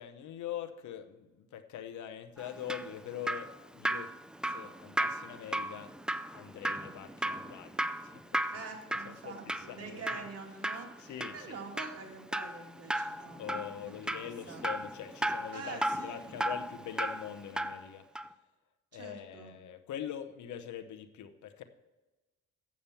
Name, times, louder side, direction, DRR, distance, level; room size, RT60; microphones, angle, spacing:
voice 1, 0.0-4.1 4.4-5.9 6.3-8.5 9.0-10.0 11.0-11.6 13.4-18.1 18.9-21.6, left 10 dB, 75° left, 10 dB, 0.9 m, -43 dB
Drip, 2.4-17.9 18.1-18.3, right 1 dB, 5° right, 0.4 m, -36 dB
voice 2, 8.5-13.8 14.1-14.8 15.5-16.2 18.9-19.6, right 4 dB, 55° right, 0 dB, 2.7 m, -46 dB
8.6 x 7.4 x 7.0 m, 1.2 s
cardioid pair, 90°, 30 cm